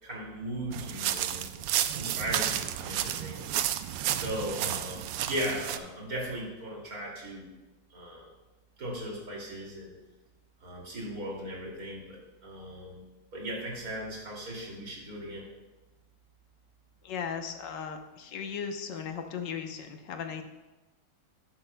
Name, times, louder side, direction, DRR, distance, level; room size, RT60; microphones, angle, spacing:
voice 1, 0.0-1.5 1.9-3.4 4.1-7.5 7.9-8.3 8.8-9.9 10.6-12.2 12.4-13.0 13.3-15.5, equal, 50° right, -3 dB, 3.1 m, -37 dB
sound 1, 0.7-5.8, right 11 dB, 80° right, 1.3 m, -31 dB
voice 2, 17.0-20.4, left 7 dB, 75° left, 5 dB, 1.6 m, -37 dB
13.0 x 10.5 x 2.3 m, 1.1 s
omnidirectional pair, 2.0 m